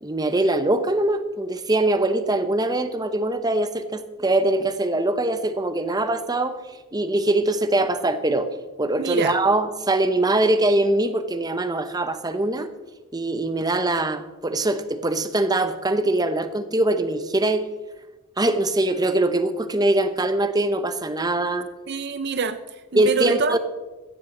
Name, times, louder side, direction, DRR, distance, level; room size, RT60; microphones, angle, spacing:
voice 1, 0.0-6.6 6.9-8.5 8.8-12.7 13.1-17.7 18.4-21.7 22.9-23.6, right 2 dB, 20° right, 10 dB, 0.8 m, -22 dB
voice 2, 9.0-9.4 21.9-23.6, right 5 dB, 50° right, 11 dB, 0.5 m, -26 dB
16.0 x 14.0 x 3.9 m, 1.2 s
head